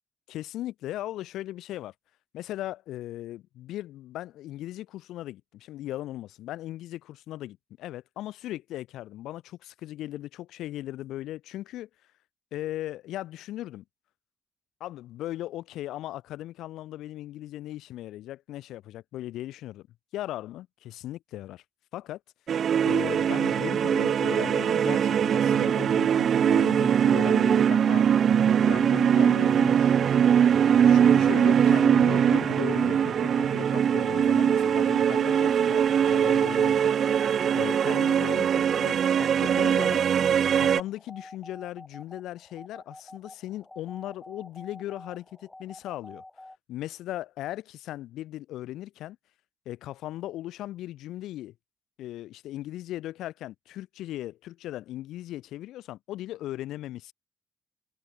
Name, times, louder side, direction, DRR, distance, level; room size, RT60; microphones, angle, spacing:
voice 1, 0.3-1.9 2.3-11.9 12.5-13.8 14.8-19.9 20.1-21.6 21.9-22.2 22.8-28.0 28.6-30.1 30.7-36.9 37.5-40.0 40.5-46.2 46.7-49.2 49.7-51.5 52.0-57.1, left 14 dB, 85° left, 1.0 m, -38 dB
sound 1, 22.5-40.8, right 8 dB, 60° right, 0.7 m, -22 dB
sound 2, 28.9-46.6, left 2 dB, 10° left, 4.6 m, -49 dB
cardioid pair, 90°, 0 cm